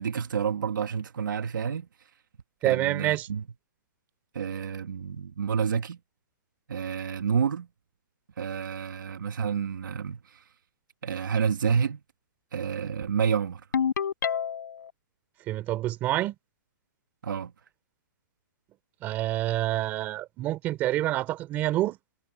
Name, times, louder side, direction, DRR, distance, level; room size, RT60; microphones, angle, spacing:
voice 1, 0.0-1.9 2.6-3.5 4.3-6.0 6.7-7.7 8.4-10.4 11.0-12.0 12.5-13.6 17.2-17.5, right 7 dB, 75° right, 2.3 m, -29 dB
voice 2, 2.6-3.3 15.5-16.4 19.0-22.0, right 15 dB, 15° right, 3.5 m, -27 dB
Ringtone, 13.7-14.9, left 8 dB, 70° left, 4.6 m, -27 dB
hypercardioid pair, 175°, 11 cm